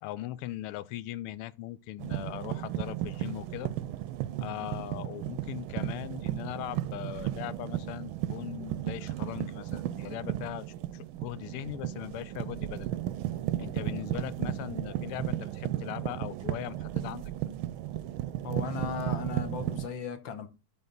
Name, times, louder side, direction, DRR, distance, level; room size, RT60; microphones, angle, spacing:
voice 1, 0.0-3.7 4.4-10.7 10.9-12.9 13.6-17.3, left 15 dB, 90° left, 1.5 m, -39 dB
sound 1, 2.0-19.9, right 13 dB, 75° right, 1.3 m, -34 dB
voice 2, 18.4-20.5, left 6 dB, 65° left, 1.7 m, -36 dB
12.0 x 4.1 x 3.9 m
omnidirectional pair, 2.4 m